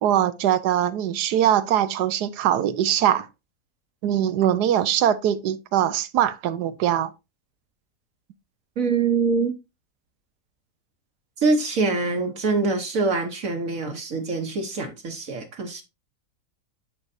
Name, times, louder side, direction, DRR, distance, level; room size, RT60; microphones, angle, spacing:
voice 1, 0.0-3.3 4.0-7.1, right 10 dB, 85° right, 1.3 m, -22 dB
voice 2, 8.8-9.5 11.4-15.8, right 4 dB, 60° right, 1.4 m, -24 dB
10.5 x 4.7 x 2.7 m
omnidirectional pair, 1.7 m